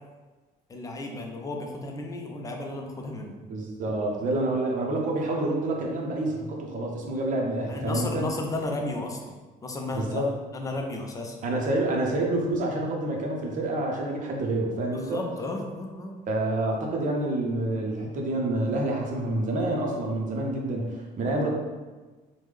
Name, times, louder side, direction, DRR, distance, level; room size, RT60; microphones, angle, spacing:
voice 1, 0.7-3.3 7.7-9.2 9.6-11.4 14.9-16.2, left 2 dB, 20° left, 2 dB, 0.5 m, -33 dB
voice 2, 3.5-8.3 9.9-10.3 11.4-15.3 16.3-21.5, right 2 dB, 50° right, 0 dB, 0.7 m, -28 dB
3.3 x 2.1 x 3.2 m, 1.3 s
cardioid pair, 110°, 17 cm